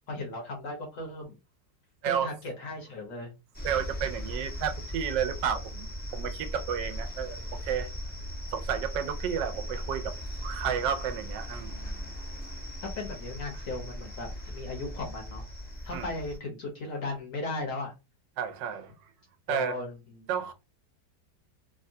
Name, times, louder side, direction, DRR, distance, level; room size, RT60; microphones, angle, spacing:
voice 1, 0.1-1.4 2.0-3.3 11.7-12.0 13.0-15.4 15.8-17.9 19.5-20.3, left 2 dB, 60° left, 1.0 m, -37 dB
sound 1, 3.5-16.4, equal, 15° left, 0.4 m, -38 dB
voice 2, 3.6-7.9 8.5-10.1 10.4-11.9 15.9-16.1 18.4-18.9 19.5-19.8 20.3-20.5, right 8 dB, 85° right, 1.3 m, -31 dB
3.5 x 2.2 x 2.6 m
omnidirectional pair, 1.9 m